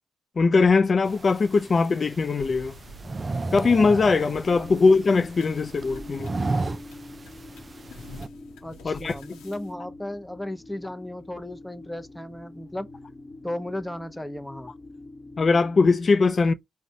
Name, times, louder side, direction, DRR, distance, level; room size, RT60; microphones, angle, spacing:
voice 1, 0.4-2.7 3.5-6.3 8.8-9.1 15.4-16.5, left 4 dB, 50° left, 0.4 m, -20 dB
sound 1, 1.0-8.3, right 3 dB, 40° right, 0.3 m, -34 dB
sound 2, 2.4-9.7, equal, 90° left, 0.8 m, -47 dB
sound 3, 4.5-16.0, left 2 dB, 30° left, 1.1 m, -45 dB
voice 2, 8.6-12.9 13.4-14.7, left 1 dB, 5° left, 0.6 m, -35 dB
4.9 x 2.1 x 2.7 m
supercardioid pair, 45°, 0 cm